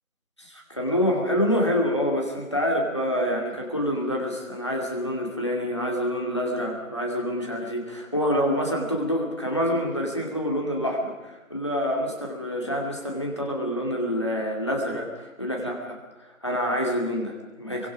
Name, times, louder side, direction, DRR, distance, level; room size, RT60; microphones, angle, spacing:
voice 1, 0.4-15.8 16.4-17.9, equal, 20° left, -1 dB, 2.4 m, -27 dB
23.5 x 23.0 x 5.1 m, 1.1 s
figure-of-eight pair, 175°, 42 cm